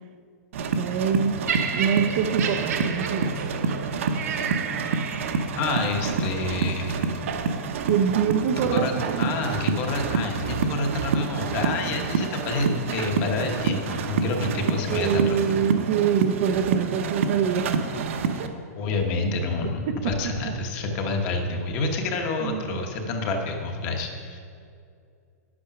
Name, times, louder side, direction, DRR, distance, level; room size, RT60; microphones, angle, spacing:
sound 1, 0.5-18.5, right 5 dB, 50° right, 0.9 m, -28 dB
voice 1, 0.7-1.4 1.7-3.5 7.9-9.3 14.9-17.8 18.4-18.5 19.9-20.0 20.4-20.5 22.4-22.9, right 8 dB, 30° right, 6 dB, 0.5 m, -25 dB
Laughter, 1.5-5.7 6.5-6.7, right 7 dB, 70° right, 1.5 m, -31 dB
voice 2, 5.6-7.0 8.7-15.4 18.8-24.4, left 3 dB, 20° left, 3 dB, 1.0 m, -28 dB
9.9 x 8.5 x 5.9 m, 2.4 s
supercardioid pair, 180°, 9 cm